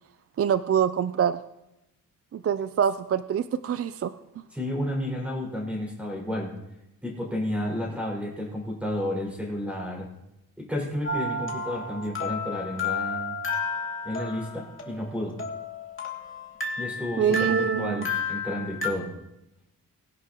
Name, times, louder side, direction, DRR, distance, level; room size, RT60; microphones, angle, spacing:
voice 1, 0.4-1.4 2.3-4.1 17.2-18.0, right 8 dB, 45° right, 12 dB, 0.4 m, -25 dB
voice 2, 4.5-6.5 7.0-10.1 10.6-13.4 14.0-15.4 16.8-19.1, left 1 dB, 5° right, -2 dB, 5.3 m, -31 dB
sound 1, 11.0-18.9, left 3 dB, 35° left, 2.4 m, -32 dB
21.0 x 11.0 x 3.0 m, 0.91 s
wide cardioid pair, 130°, 34 cm